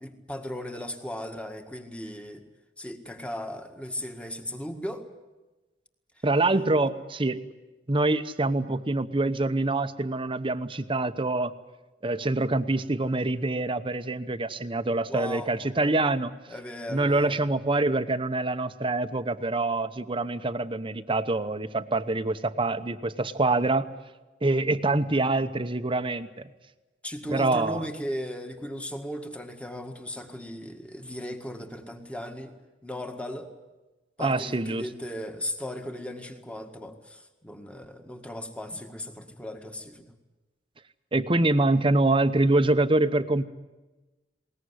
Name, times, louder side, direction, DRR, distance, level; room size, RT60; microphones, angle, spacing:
voice 1, 0.0-2.4 2.8-5.1 15.1-15.5 16.5-17.4 27.0-32.5 32.8-33.5 34.2-40.0, left 1 dB, 5° left, 5 dB, 1.8 m, -37 dB
voice 2, 6.2-7.4 7.9-11.5 12.0-16.3 16.9-23.9 24.4-26.3 27.3-27.8 34.2-34.8 41.1-43.4, right 2 dB, 30° right, 11 dB, 0.9 m, -25 dB
21.0 x 19.0 x 9.8 m, 1.1 s
head